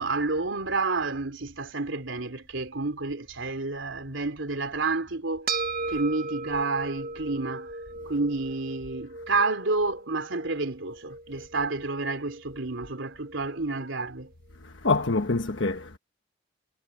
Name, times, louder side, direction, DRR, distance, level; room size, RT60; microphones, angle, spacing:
voice 1, 0.0-5.5 5.9-7.7 8.1-14.3, right 3 dB, 90° right, 3.3 m, -29 dB
sound 1, 5.5-14.1, right 3 dB, 55° right, 1.4 m, -37 dB
voice 2, 14.6-16.0, left 3 dB, 75° left, 1.3 m, -26 dB
head